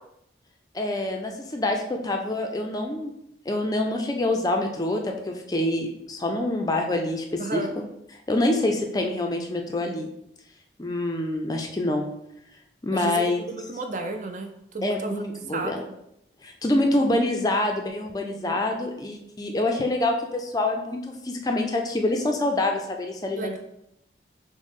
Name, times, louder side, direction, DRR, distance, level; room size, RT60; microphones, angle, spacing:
voice 1, 0.7-3.1 3.5-7.6 8.3-10.1 10.8-12.1 12.8-13.4 14.8-15.8 16.4-23.6, left 1 dB, 20° left, 2 dB, 0.4 m, -26 dB
voice 2, 7.4-7.7 12.9-15.2 15.5-15.8 18.2-18.6 23.3-23.6, right 2 dB, 40° right, 5 dB, 0.4 m, -33 dB
6.2 x 2.1 x 3.6 m, 0.79 s
head